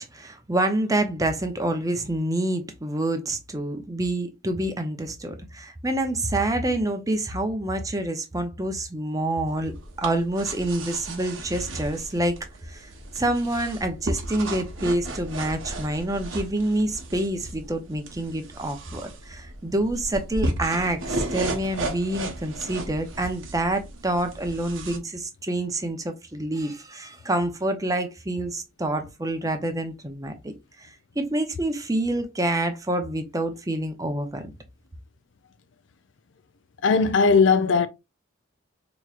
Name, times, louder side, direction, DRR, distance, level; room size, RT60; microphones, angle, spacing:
voice 1, 0.0-12.4 12.7-30.5 30.8-34.5, right 1 dB, 15° right, 0.6 m, -27 dB
sound 1, 9.5-25.0, right 2 dB, 85° right, 1.0 m, -34 dB
voice 2, 36.8-37.9, left 5 dB, 65° left, 0.5 m, -18 dB
4.7 x 3.0 x 2.4 m
head